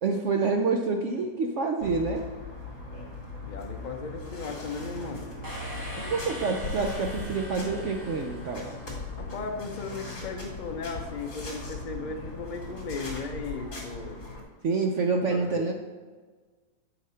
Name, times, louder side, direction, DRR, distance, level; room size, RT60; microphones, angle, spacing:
voice 1, 0.0-2.3 6.0-8.8 14.6-15.7, right 4 dB, 80° right, 3 dB, 0.6 m, -27 dB
sound 1, 1.8-14.4, left 2 dB, 55° left, 3.1 m, -39 dB
voice 2, 3.4-5.3 9.2-14.2 15.3-15.7, left 4 dB, 80° left, 3 dB, 0.4 m, -36 dB
sound 2, 5.4-9.2, left 1 dB, 10° right, 1.3 m, -41 dB
9.7 x 5.0 x 5.6 m, 1.4 s
omnidirectional pair, 2.0 m